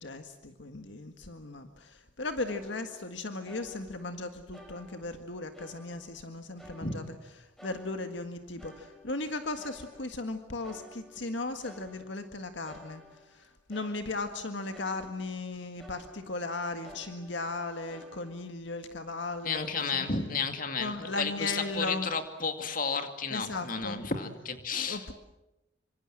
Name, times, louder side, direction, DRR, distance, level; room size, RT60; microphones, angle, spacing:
voice 1, 0.0-7.2 7.6-13.0 13.3-20.1 20.8-22.1 23.3-24.0 24.9-25.1, left 2 dB, 70° left, 7 dB, 1.7 m, -37 dB
sound 1, 2.5-3.2 3.5-4.2 4.5-6.3 6.6-7.3 7.6-10.3 10.6-12.3 12.6-15.5 15.8-16.5 16.8-18.5, equal, ahead, 5.6 m, -53 dB
voice 2, 19.4-25.1, left 4 dB, 45° left, 7 dB, 2.4 m, -32 dB
26.5 x 25.5 x 7.6 m, 0.95 s
head